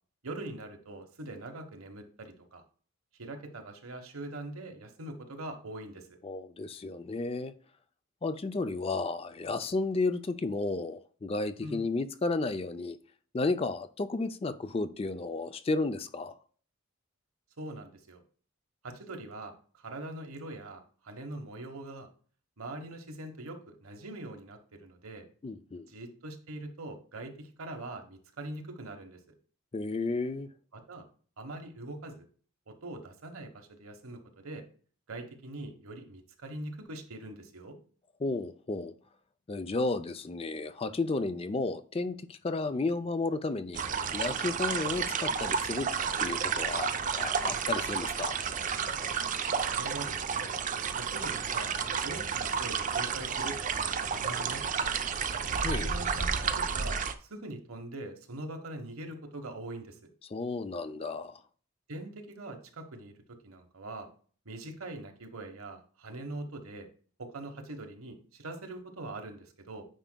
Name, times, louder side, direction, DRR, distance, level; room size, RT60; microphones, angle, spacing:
voice 1, 0.2-2.6 3.2-6.1 11.6-11.9 17.6-18.2 18.8-22.1 22.6-25.3 25.9-29.2 30.7-31.1 31.4-32.2 32.7-34.6 35.1-37.8 49.7-50.5 50.9-51.7 52.0-54.9 55.8-60.0 61.9-64.1 64.4-66.9 67.2-69.8, right 2 dB, 80° right, 5 dB, 1.2 m, -43 dB
voice 2, 6.2-7.5 8.2-13.0 13.3-16.4 25.4-25.9 29.7-30.5 38.2-38.9 39.5-43.8 44.1-45.9 46.2-46.9 47.2-48.4 55.6-55.9 60.3-61.4, left 3 dB, 25° left, 11 dB, 0.4 m, -32 dB
sound 1, 43.7-57.1, right 6 dB, 35° right, 0.4 m, -31 dB
9.1 x 5.0 x 2.2 m, 0.43 s
head